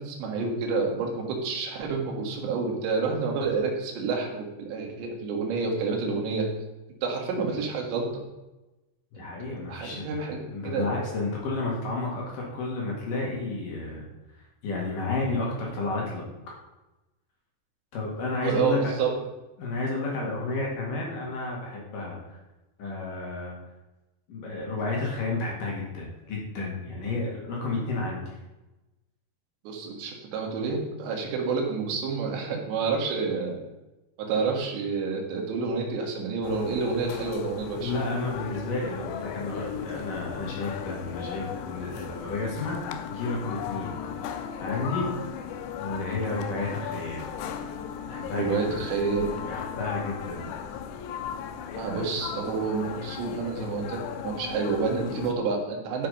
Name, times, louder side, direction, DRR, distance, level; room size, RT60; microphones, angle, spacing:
voice 1, 0.0-6.5 7.0-8.1 9.7-10.4 10.6-11.0 18.4-19.2 29.7-33.6 34.2-37.9 48.4-49.2 51.7-54.0 54.2-56.1, right 4 dB, 80° right, 1 dB, 3.9 m, -29 dB
voice 2, 9.1-14.1 14.6-16.2 17.9-18.8 19.6-22.4 22.8-23.6 24.3-28.4 37.8-44.0 44.3-45.1 45.8-47.3 48.0-48.8 49.5-50.5, left 3 dB, 55° left, -2 dB, 3.3 m, -31 dB
sound 1, 36.4-55.4, left 7 dB, 85° left, 2.8 m, -36 dB
12.0 x 5.9 x 5.2 m, 1.0 s
omnidirectional pair, 5.0 m